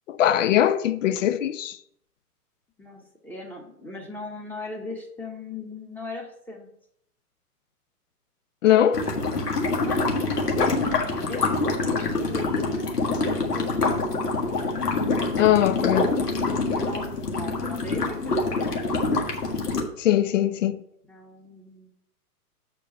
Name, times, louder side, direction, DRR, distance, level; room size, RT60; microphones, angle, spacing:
voice 1, 0.1-1.8 8.6-9.0 15.4-16.1 20.0-20.8, left 11 dB, 55° left, 0.7 m, -21 dB
voice 2, 2.8-6.7 9.8-13.8 16.8-18.9 21.1-21.9, left 3 dB, 5° left, 0.9 m, -39 dB
sound 1, 8.9-19.8, left 3 dB, 75° left, 1.7 m, -25 dB
7.4 x 4.6 x 5.5 m
figure-of-eight pair, 120°, 47 cm